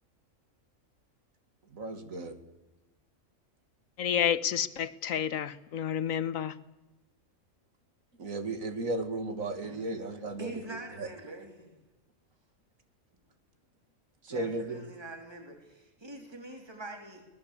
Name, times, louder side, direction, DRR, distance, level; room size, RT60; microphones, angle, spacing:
voice 1, 1.7-2.4 8.2-10.6 11.0-11.1 14.2-14.8, right 2 dB, 85° right, 8 dB, 2.6 m, -35 dB
voice 2, 4.0-6.5, left 9 dB, 85° left, 15 dB, 1.4 m, -30 dB
voice 3, 9.6-10.0 10.4-11.7 14.3-17.3, right 2 dB, 20° right, 4 dB, 3.4 m, -44 dB
24.0 x 19.0 x 8.3 m, 1.0 s
omnidirectional pair, 1.4 m